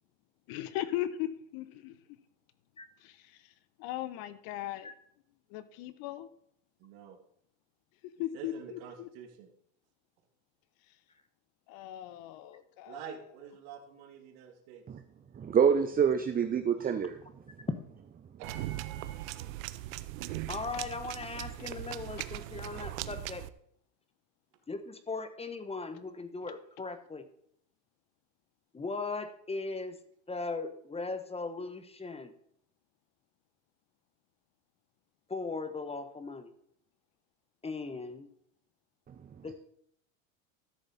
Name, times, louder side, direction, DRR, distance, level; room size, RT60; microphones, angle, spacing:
voice 1, 0.5-2.0 3.0-4.9 5.5-6.3 8.2-9.1 10.9-11.0 11.7-13.1 22.8-22.9, left 13 dB, 60° left, 1.1 m, -38 dB
voice 2, 6.8-7.2 8.3-9.5 12.9-14.8 18.4-19.4 25.9-26.0, right 8 dB, 65° right, 2.1 m, -47 dB
voice 3, 15.4-17.2, right 7 dB, 20° right, 0.7 m, -26 dB
sound 1, 18.4-23.5, right 15 dB, 80° right, 0.7 m, -39 dB
voice 4, 20.5-23.5 24.7-27.2 28.7-30.0 30.3-32.3 35.3-36.5 37.6-38.3 39.4-39.5, left 3 dB, 15° left, 1.0 m, -38 dB
12.5 x 6.9 x 4.2 m
supercardioid pair, 100°, 40 cm